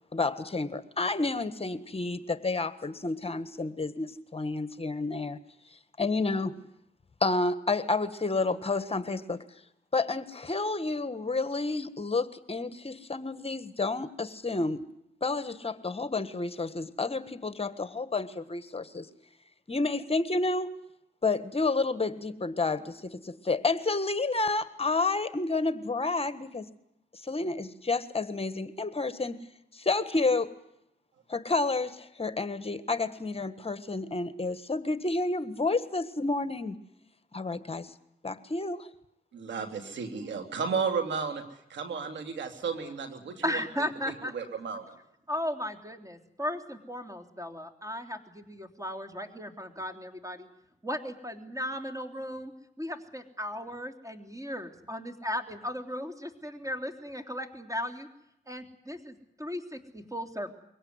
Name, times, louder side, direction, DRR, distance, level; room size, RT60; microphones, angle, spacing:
voice 1, 0.1-5.4 6.0-6.6 7.2-9.4 9.9-14.8 15.2-19.1 19.7-20.7 21.2-26.7 27.2-29.4 29.7-30.5 31.3-36.8 37.3-37.9 38.2-38.9, left 3 dB, 30° left, 12 dB, 1.5 m, -30 dB
voice 2, 39.3-41.4 41.7-43.6 44.1-44.9, right 5 dB, 80° right, 6 dB, 3.2 m, -33 dB
voice 3, 43.4-44.3 45.3-50.5 50.8-52.5 52.8-58.1 58.5-60.5, left 1 dB, 15° right, 7 dB, 3.4 m, -36 dB
23.0 x 17.5 x 9.7 m, 0.80 s
cardioid pair, 60°, 18 cm